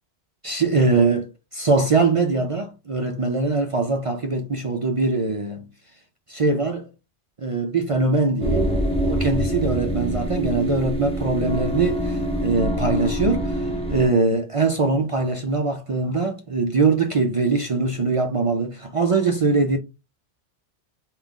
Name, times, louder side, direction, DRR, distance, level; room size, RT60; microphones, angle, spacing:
voice 1, 0.4-5.6 6.3-6.8 7.4-19.8, right 3 dB, 50° right, 0.4 m, -22 dB
sound 1, 8.4-14.1, equal, 5° left, 0.9 m, -25 dB
3.7 x 2.4 x 3.5 m
omnidirectional pair, 1.2 m